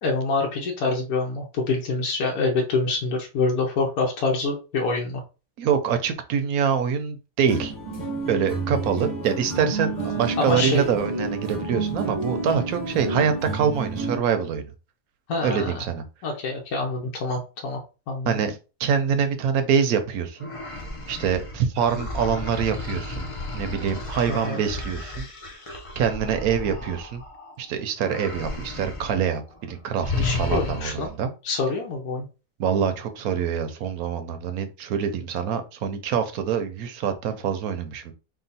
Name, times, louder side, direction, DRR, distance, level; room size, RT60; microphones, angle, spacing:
voice 1, 0.0-5.2 10.4-10.9 15.3-15.8 16.2-17.8 18.1-18.3 24.3-24.6 30.1-31.1 31.4-32.3, left 3 dB, 75° left, 1.3 m, -26 dB
voice 2, 5.6-7.7 8.3-14.6 15.4-16.0 18.3-20.5 21.1-23.3 23.5-25.3 26.0-27.2 27.6-31.3 32.6-38.1, right 7 dB, 70° right, 1.1 m, -25 dB
sound 1, 7.4-14.2, right 3 dB, 30° left, 1.8 m, -30 dB
sound 2, 20.4-27.5 28.0-29.2 29.5-29.7 30.0-31.1, left 2 dB, 45° left, 0.4 m, -33 dB
3.7 x 2.3 x 4.0 m
omnidirectional pair, 1.6 m